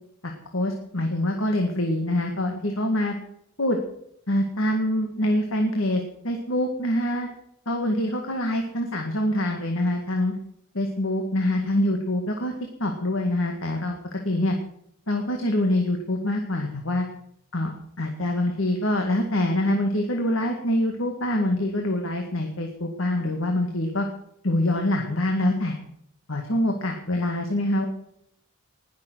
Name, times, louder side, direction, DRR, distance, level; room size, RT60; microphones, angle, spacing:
voice 1, 0.2-3.1 3.6-3.8 4.3-7.3 7.7-10.3 10.7-12.5 12.8-14.6 15.1-17.1 17.5-17.7 18.0-24.1 24.4-25.8 26.3-27.8, left 1 dB, 65° left, 3 dB, 2.1 m, -25 dB
20.0 x 7.4 x 7.9 m, 0.73 s
head